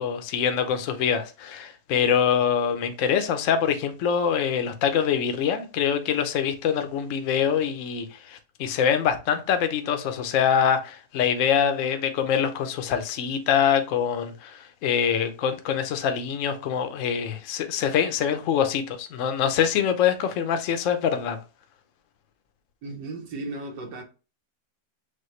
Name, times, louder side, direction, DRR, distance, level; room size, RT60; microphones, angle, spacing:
voice 1, 0.0-21.4, left 8 dB, 60° left, 0.9 m, -24 dB
voice 2, 22.8-24.0, right 2 dB, 80° right, 1.7 m, -35 dB
6.4 x 2.3 x 3.1 m
omnidirectional pair, 1.9 m